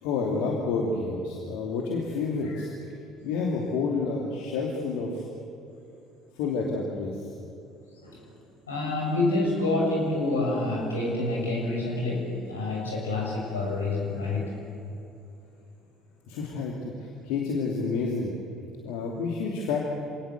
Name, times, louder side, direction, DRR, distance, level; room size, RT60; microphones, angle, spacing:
voice 1, 0.0-2.7 3.2-5.2 6.3-7.2 16.3-18.3 18.8-19.8, left 4 dB, 65° left, -1 dB, 2.8 m, -29 dB
voice 2, 8.7-14.5, left 2 dB, 80° left, -3 dB, 7.1 m, -27 dB
27.0 x 19.0 x 8.3 m, 2.8 s
figure-of-eight pair, 55°, 0 cm